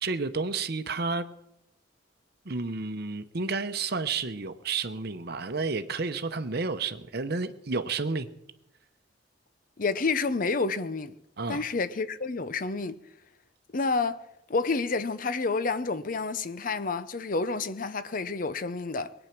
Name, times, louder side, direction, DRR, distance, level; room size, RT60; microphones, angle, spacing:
voice 1, 0.0-1.2 2.4-8.3 11.4-11.6, right 4 dB, 55° right, 0.8 m, -31 dB
voice 2, 9.8-11.1 11.5-13.0 13.7-14.2 14.5-19.1, left 4 dB, 45° left, 0.7 m, -29 dB
20.5 x 8.9 x 6.0 m
head